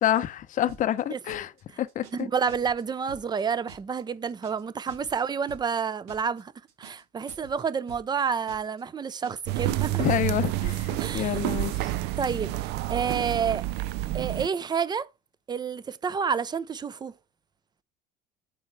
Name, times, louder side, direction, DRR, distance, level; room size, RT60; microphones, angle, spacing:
voice 1, 0.0-1.5 1.8-2.3 10.0-11.9, left 11 dB, 45° left, 0.7 m, -28 dB
sound 1, 0.7-1.0 1.3-1.6 1.9-2.2 2.5-2.8 3.1-3.4 3.7-4.0 4.3-4.6 4.9-5.2 5.5-5.8 6.1-6.4 6.7-7.0 7.3-7.6 7.9-8.2 8.5-8.8 9.1-9.4 9.7-10.0, right 4 dB, 85° right, 2.0 m, -48 dB
voice 2, 2.1-6.5 6.8-10.0 11.0-11.4 12.2-13.6 14.1-15.1 15.5-17.1, right 6 dB, 20° right, 0.6 m, -29 dB
sound 2, 9.5-14.5, right 15 dB, 65° right, 0.5 m, -29 dB
7.7 x 3.2 x 6.0 m
supercardioid pair, 100°, 19 cm